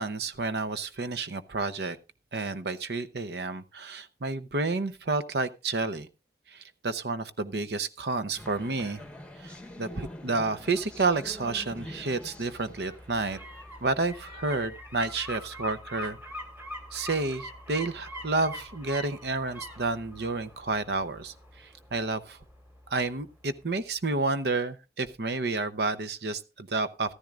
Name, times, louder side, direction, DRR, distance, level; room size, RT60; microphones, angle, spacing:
voice 1, 0.0-2.0 2.3-6.1 6.5-9.0 9.4-13.4 13.8-16.2 16.9-22.4 22.9-27.1, right 3 dB, 70° right, 12 dB, 0.8 m, -30 dB
sound 1, 8.4-14.5, left 1 dB, 5° left, 1.0 m, -46 dB
sound 2, 10.5-23.3 23.6-23.7, left 1 dB, 10° right, 1.9 m, -44 dB
14.5 x 13.5 x 2.4 m, 0.27 s
head